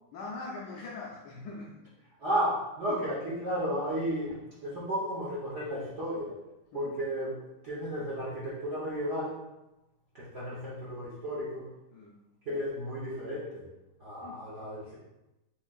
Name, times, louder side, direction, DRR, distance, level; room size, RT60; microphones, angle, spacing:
voice 1, 0.1-1.8 2.9-3.0 6.7-7.0 11.9-12.2 14.2-14.5, left 3 dB, 85° left, -2 dB, 0.9 m, -42 dB
voice 2, 2.2-6.4 6.7-9.4 10.1-11.7 12.5-13.7 14.0-14.9, equal, 55° right, -7 dB, 0.8 m, -33 dB
4.3 x 3.1 x 2.3 m, 0.97 s
omnidirectional pair, 2.3 m